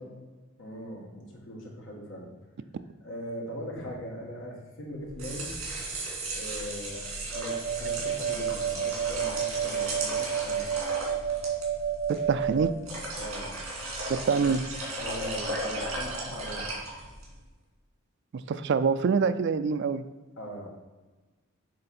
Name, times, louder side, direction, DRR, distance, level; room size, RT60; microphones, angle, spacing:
voice 1, 0.6-2.3 3.0-5.5 6.3-10.7 13.2-13.5 14.3-14.5 15.0-16.7 20.4-20.7, equal, 60° left, -1 dB, 1.5 m, -40 dB
sound 1, 5.0-17.3, right 2 dB, 80° right, 2.0 m, -36 dB
sound 2, 7.3-12.7, right 8 dB, 35° right, 1.1 m, -30 dB
voice 2, 12.1-12.7 14.1-14.6 18.5-20.0, right 5 dB, 55° right, 11 dB, 0.3 m, -25 dB
7.8 x 3.3 x 4.3 m, 1.2 s
head